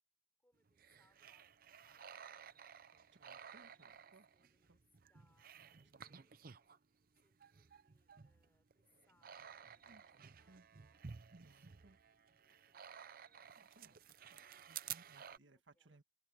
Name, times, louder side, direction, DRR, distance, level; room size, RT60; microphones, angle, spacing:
voice 1, 0.4-3.1 3.7-4.8 5.1-6.8 7.2-11.0 11.4-12.0 12.4-13.5 13.9-14.0 14.4-14.9 15.3-16.0, left 1 dB, 10° left, 3.8 m, -80 dB
sound 1, 0.7-6.8 7.2-15.4, right 8 dB, 50° right, 0.6 m, -54 dB
voice 2, 3.2-4.3 4.7-4.8 5.8-6.4 9.9-10.7 11.3-12.0 13.6-14.0 14.3-16.0, right 2 dB, 75° right, 1.6 m, -67 dB
open air
head